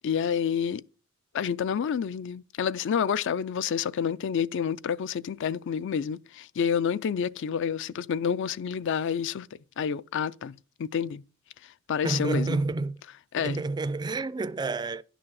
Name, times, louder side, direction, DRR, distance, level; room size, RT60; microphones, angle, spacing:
voice 1, 0.0-0.8 1.3-9.5 9.8-11.2 11.9-12.6 13.3-13.6, left 7 dB, 65° left, 0.4 m, -29 dB
voice 2, 12.0-13.0 13.4-15.0, right 3 dB, 20° right, 0.3 m, -29 dB
10.5 x 6.1 x 4.7 m
head